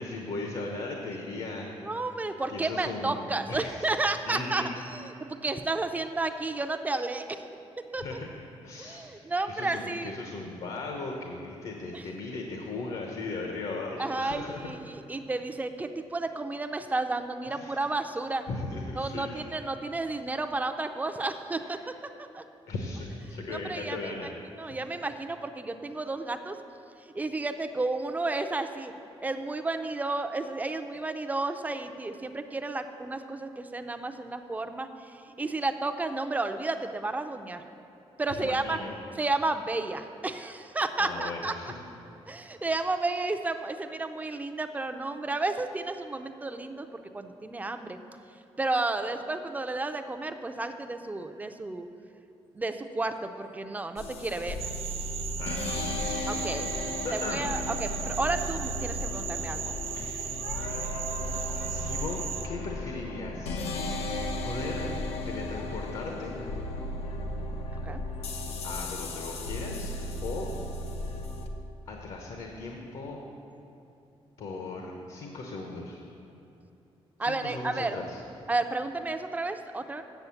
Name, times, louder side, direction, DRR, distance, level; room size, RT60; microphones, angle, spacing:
voice 1, 0.0-1.9 2.5-3.9 4.2-4.7 8.0-8.3 8.6-9.1 9.5-14.6 17.5-17.8 18.5-19.4 21.6-21.8 22.7-24.3 38.3-38.9 41.0-41.8 55.4-55.7 56.0-56.4 57.0-57.5 59.9-60.3 60.5-60.9 61.7-63.6 64.4-64.9 65.2-66.4 68.6-69.9 70.2-70.5 71.9-73.2 74.4-76.0 77.2-78.2, left 3 dB, 65° left, 1 dB, 1.0 m, -37 dB
voice 2, 1.8-7.4 7.9-8.0 8.8-10.1 11.9-12.1 14.0-18.4 19.0-21.8 22.3-22.4 23.3-24.1 24.6-26.6 27.0-28.9 29.2-37.6 38.2-38.8 39.2-41.5 42.3-48.0 48.6-51.9 52.5-54.6 56.3-56.7 57.1-59.8 67.8-68.0 77.2-78.0 78.5-80.0, right 2 dB, 15° right, 8 dB, 0.5 m, -32 dB
sound 1, 54.0-71.5, left 2 dB, 85° left, 0.8 m, -35 dB
sound 2, 54.6-62.5, right 9 dB, 75° right, 0.6 m, -37 dB
8.2 x 7.3 x 7.1 m, 2.9 s
cardioid pair, 120°, 10 cm